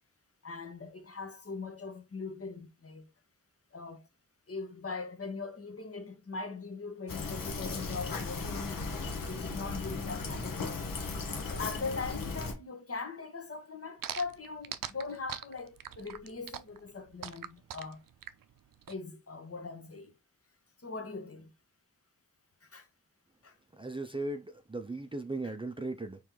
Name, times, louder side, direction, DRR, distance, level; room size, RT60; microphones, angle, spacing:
voice 1, 0.4-3.0 3.7-4.0 4.5-8.9 9.2-11.0 11.4-18.0 18.9-20.1 20.8-21.5 22.6-22.9 23.4-23.6 25.4-25.5, left 4 dB, 45° left, 1.1 m, -41 dB
Fill (with liquid), 7.1-12.5, left 3 dB, 80° left, 1.1 m, -36 dB
sound 1, 14.0-18.9, right 10 dB, 80° right, 0.5 m, -41 dB
voice 2, 23.8-26.2, right 2 dB, 15° right, 0.5 m, -37 dB
4.4 x 3.2 x 3.7 m
cardioid pair, 65°, 33 cm